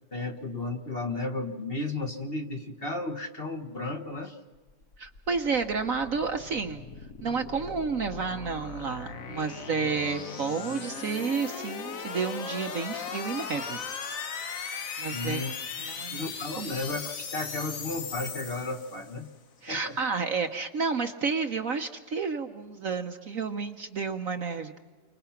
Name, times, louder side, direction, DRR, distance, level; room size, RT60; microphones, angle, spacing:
voice 1, 0.1-4.4 15.1-15.5 16.1-19.3 19.7-20.0, left 2 dB, 35° left, 3 dB, 1.5 m, -34 dB
sound 1, 4.7-19.2, left 5 dB, 50° left, 1.5 m, -38 dB
voice 2, 5.0-6.8 7.2-13.8 15.0-15.4 15.8-16.3 16.6-16.7 19.6-24.8, right 5 dB, 55° right, 6 dB, 1.2 m, -31 dB
30.0 x 24.5 x 5.9 m, 1.3 s
omnidirectional pair, 2.0 m